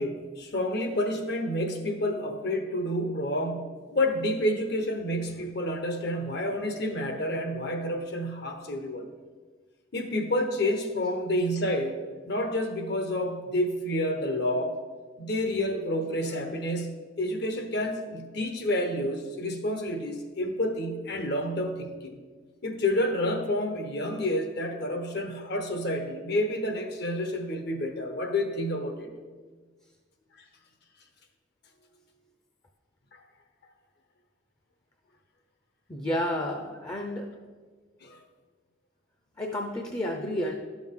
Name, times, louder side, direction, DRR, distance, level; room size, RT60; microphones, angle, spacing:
voice 1, 0.0-9.0 9.9-12.0 12.3-14.8 15.2-22.2 22.6-29.1 33.1-33.2 38.0-38.2, left 1 dB, 60° left, 5 dB, 1.0 m, -29 dB
voice 2, 35.9-37.3 39.4-40.5, left 1 dB, 20° left, 3 dB, 0.6 m, -31 dB
11.5 x 6.2 x 3.7 m, 1.5 s
head